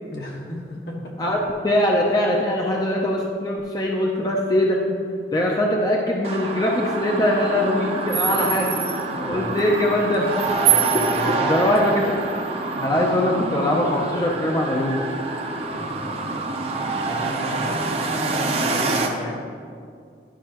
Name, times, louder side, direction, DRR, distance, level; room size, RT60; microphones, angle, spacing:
voice 1, 0.1-1.3 9.1-9.6 10.6-11.6 12.7-12.8 15.7-19.4, left 1 dB, 70° left, -2 dB, 1.4 m, -34 dB
voice 2, 1.2-4.8 5.3-8.7 9.3-10.4 11.2-12.2 12.8-15.0 17.7-17.8, left 1 dB, 20° left, -1 dB, 0.5 m, -22 dB
sound 1, 6.2-19.1, right 4 dB, 35° right, 0.6 m, -26 dB
11.0 x 5.4 x 2.9 m, 2.3 s
head